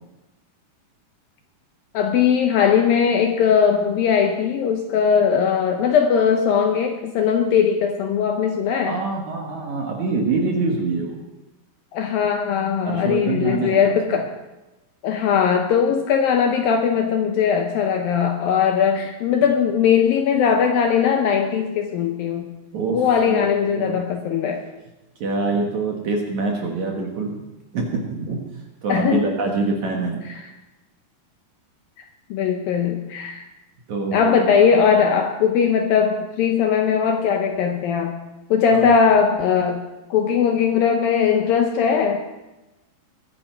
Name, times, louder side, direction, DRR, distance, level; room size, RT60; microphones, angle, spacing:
voice 1, 1.9-9.0 11.9-14.3 15.0-22.5 22.9-24.7 28.9-29.3 30.3-30.4 32.3-33.5 34.1-38.2 38.5-39.8 40.1-42.3, left 7 dB, 75° left, 4 dB, 2.2 m, -19 dB
voice 2, 8.8-11.2 12.8-14.2 22.7-23.0 23.3-23.5 23.7-24.0 25.2-27.4 27.7-28.4 28.8-30.2 33.9-34.6 38.7-39.0, right 3 dB, 55° right, 0 dB, 2.3 m, -25 dB
21.5 x 10.0 x 4.5 m, 1.0 s
omnidirectional pair, 5.0 m